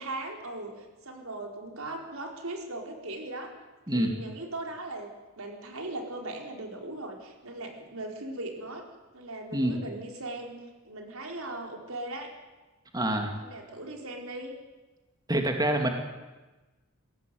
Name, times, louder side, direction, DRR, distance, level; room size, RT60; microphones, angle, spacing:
voice 1, 0.0-3.5 3.9-5.1 5.4-8.8 9.1-12.3 13.4-14.5, right 2 dB, 90° right, 2 dB, 4.6 m, -39 dB
voice 2, 12.9-13.3 15.3-15.9, right 1 dB, 20° right, 3 dB, 2.5 m, -26 dB
21.5 x 17.0 x 9.4 m, 1.2 s
head